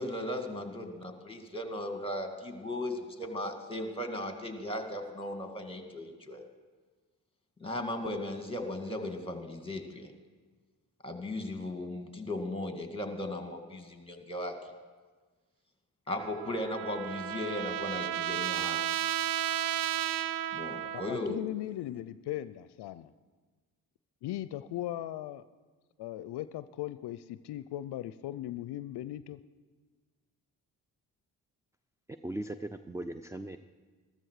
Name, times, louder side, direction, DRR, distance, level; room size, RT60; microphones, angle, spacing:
voice 1, 0.0-6.4 7.6-10.1 11.0-14.5 16.1-18.8 20.5-21.4, left 1 dB, 15° left, 4 dB, 2.4 m, -37 dB
Trumpet, 16.2-21.3, right 12 dB, 55° right, 0.6 m, -33 dB
voice 2, 20.9-23.1 24.2-25.4 26.0-29.4, left 13 dB, 75° left, 14 dB, 0.5 m, -38 dB
voice 3, 32.2-33.6, right 1 dB, 5° right, 11 dB, 0.5 m, -38 dB
14.0 x 14.0 x 4.8 m, 1.4 s
supercardioid pair, 50°, 41 cm